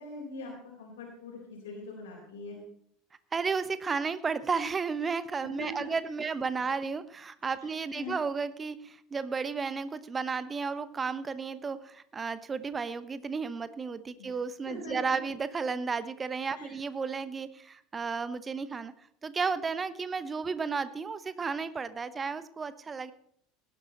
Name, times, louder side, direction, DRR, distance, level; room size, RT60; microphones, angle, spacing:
voice 1, 0.0-2.6 5.4-5.9 7.6-8.1 14.2-14.3 14.7-15.0 16.5-16.8, left 2 dB, 60° left, -3 dB, 4.0 m, -43 dB
voice 2, 3.3-18.9 19.2-23.1, right 5 dB, 20° right, 14 dB, 0.9 m, -33 dB
18.0 x 11.0 x 4.1 m, 0.69 s
figure-of-eight pair, 70°, 0 cm